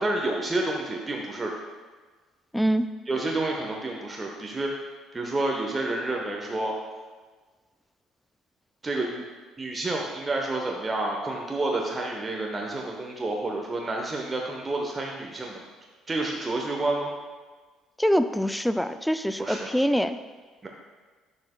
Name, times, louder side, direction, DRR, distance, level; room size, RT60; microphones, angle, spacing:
voice 1, 0.0-1.5 3.1-4.7 5.1-6.8 8.8-9.2 9.6-15.6 16.1-17.1 19.4-19.7 20.6-20.7, right 2 dB, 25° right, 0 dB, 0.9 m, -29 dB
voice 2, 2.5-2.9 18.0-20.2, equal, 5° left, 11 dB, 0.4 m, -24 dB
10.5 x 5.3 x 2.2 m, 1.4 s
figure-of-eight pair, 50°, 0 cm